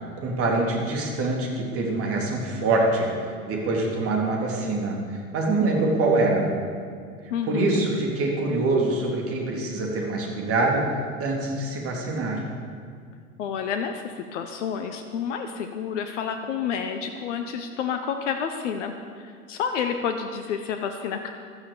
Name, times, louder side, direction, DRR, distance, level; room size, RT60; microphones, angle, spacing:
voice 1, 0.2-3.1 3.5-6.5 7.5-10.9 11.2-12.4, right 2 dB, 30° right, 0 dB, 3.3 m, -24 dB
voice 2, 7.3-7.8 13.4-21.3, left 7 dB, 50° left, 6 dB, 1.1 m, -29 dB
15.0 x 12.0 x 7.0 m, 2.2 s
figure-of-eight pair, 90°, 45 cm